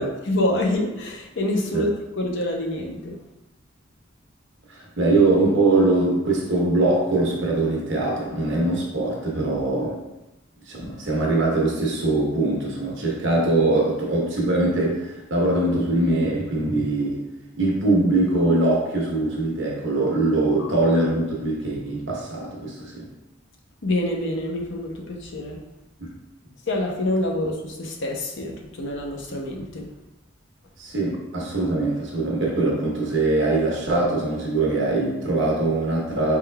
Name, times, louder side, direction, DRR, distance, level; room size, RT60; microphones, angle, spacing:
voice 1, 0.0-1.9 2.2-3.2 20.6-20.7 23.8-25.6 26.7-29.9, left 1 dB, 65° left, 1 dB, 0.7 m, -26 dB
voice 2, 4.7-10.0 10.7-17.2 17.5-23.1 26.0-26.1 30.8-36.4, right 2 dB, 70° right, -3 dB, 1.0 m, -22 dB
4.4 x 3.7 x 2.2 m, 0.98 s
head